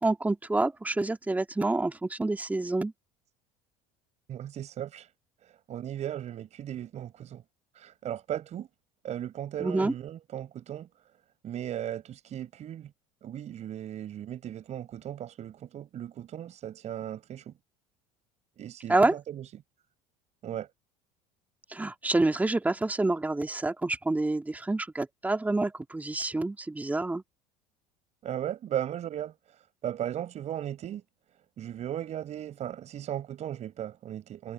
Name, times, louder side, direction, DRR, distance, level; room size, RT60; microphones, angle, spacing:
voice 1, 0.0-2.9 9.6-9.9 18.9-19.2 21.7-27.2, right 2 dB, 10° right, 2.4 m, -27 dB
voice 2, 4.3-5.1 5.4-7.4 7.7-8.7 9.0-10.9 11.4-12.9 13.2-17.5 18.6-19.5 20.4-20.7 28.2-29.3 29.8-31.0 31.6-34.5, right 11 dB, 45° right, 7.7 m, -36 dB
supercardioid pair, 105°, 16 cm